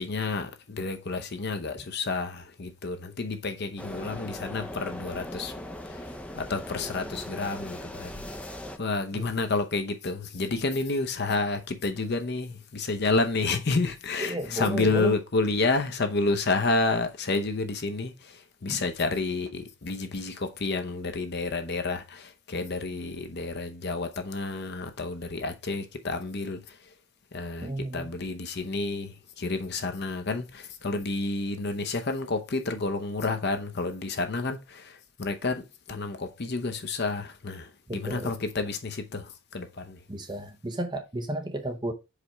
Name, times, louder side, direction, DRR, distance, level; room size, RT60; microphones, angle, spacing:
voice 1, 0.0-27.0 27.3-40.0, left 3 dB, 50° left, 0.8 m, -30 dB
sound 1, 3.8-8.8, left 1 dB, 5° left, 0.5 m, -39 dB
voice 2, 14.2-15.2 18.7-18.8 27.6-28.1 37.9-38.3 40.1-41.9, right 1 dB, 20° right, 0.8 m, -33 dB
5.0 x 4.3 x 4.5 m
head